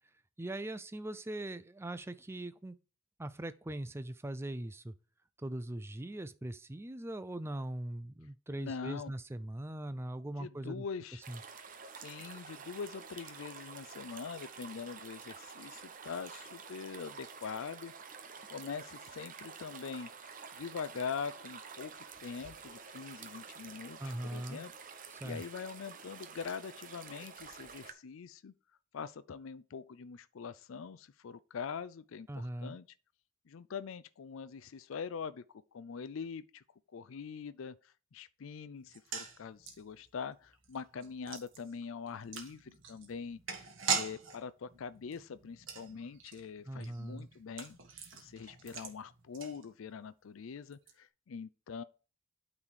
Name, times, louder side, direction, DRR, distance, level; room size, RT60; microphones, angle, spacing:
voice 1, 0.4-2.8 3.2-4.9 5.4-10.9 11.3-11.4 24.0-24.6 25.1-25.4 32.3-32.8 46.7-47.3, right 1 dB, 10° right, 0.4 m, -41 dB
voice 2, 8.5-9.1 10.4-11.2 12.0-17.9 18.5-21.9 22.2-24.7 25.2-28.5 28.9-32.9 33.5-35.4 35.7-36.6 36.9-43.7 43.9-47.8 48.1-51.8, left 6 dB, 70° left, 0.4 m, -43 dB
sound 1, 11.2-27.9, right 6 dB, 40° right, 0.8 m, -49 dB
sound 2, 38.8-50.1 50.3-50.4 50.7-50.9, right 5 dB, 65° right, 1.6 m, -42 dB
8.8 x 4.1 x 4.8 m
head